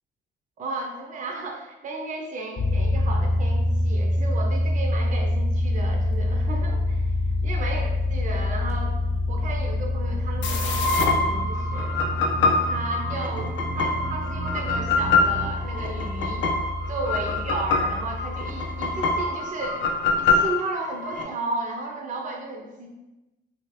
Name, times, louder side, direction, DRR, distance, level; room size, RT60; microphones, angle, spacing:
voice 1, 0.6-7.1 7.4-8.9 9.3-12.0 12.6-16.5 16.9-19.8 20.2-22.9, right 3 dB, 40° right, 1 dB, 0.5 m, -34 dB
sound 1, 2.6-19.3, left 1 dB, 35° left, 0.7 m, -26 dB
sound 2, 6.8-15.5, right 3 dB, 80° right, 0.7 m, -40 dB
sound 3, 10.4-21.2, left 3 dB, 70° left, 0.5 m, -25 dB
2.8 x 2.5 x 3.2 m, 1.0 s
cardioid pair, 90°, 20 cm